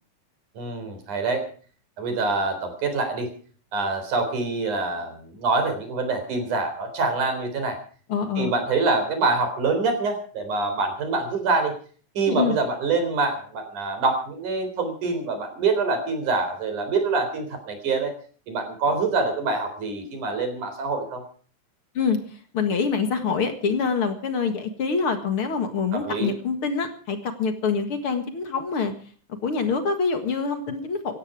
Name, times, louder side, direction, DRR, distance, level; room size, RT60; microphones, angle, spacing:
voice 1, 0.6-1.5 2.0-3.3 3.7-7.8 8.4-11.7 12.2-18.1 18.5-21.2 25.9-26.3, right 3 dB, 90° right, 7 dB, 5.3 m, -25 dB
voice 2, 8.1-8.5 12.3-12.6 22.0-22.2 22.5-28.9 29.4-31.2, left 5 dB, 50° left, 7 dB, 2.3 m, -25 dB
17.5 x 15.0 x 4.9 m, 0.43 s
omnidirectional pair, 3.4 m